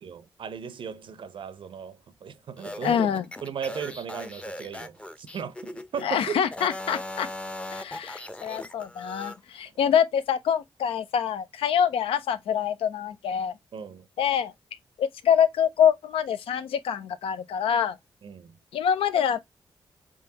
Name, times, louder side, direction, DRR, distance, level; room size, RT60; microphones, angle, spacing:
voice 1, 0.0-3.1 3.4-6.4 13.7-14.1 18.2-18.6, right 7 dB, 65° right, 0.6 m, -36 dB
sound 1, 2.6-6.1 6.5-9.4, left 1 dB, 10° left, 0.6 m, -39 dB
voice 2, 2.8-3.3 6.0-7.3 7.7-13.5 14.2-14.5 15.0-18.0 18.7-19.4, left 8 dB, 85° left, 0.5 m, -25 dB
4.2 x 3.7 x 2.7 m
cardioid pair, 60°, 9 cm